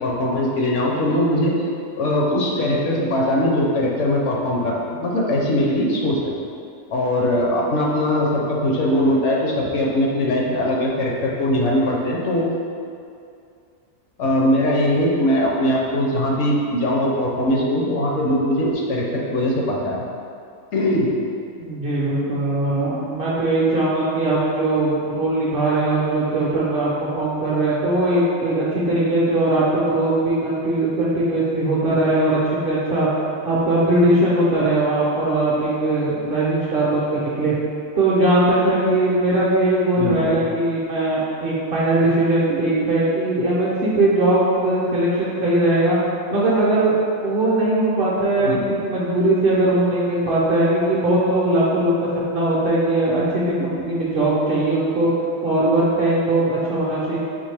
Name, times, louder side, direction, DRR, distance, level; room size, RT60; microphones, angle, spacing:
voice 1, 0.0-1.5 2.0-6.2 6.9-12.5 14.2-20.0 20.7-21.1 37.4-37.5 40.0-40.4 48.4-48.6, left 1 dB, 65° left, -2 dB, 0.9 m, -21 dB
voice 2, 21.6-33.1 33.4-37.5 38.0-46.0 46.3-47.0 47.2-55.1 55.4-57.2, right 2 dB, 55° right, -7 dB, 0.7 m, -20 dB
4.3 x 3.0 x 3.2 m, 2.4 s
omnidirectional pair, 1.4 m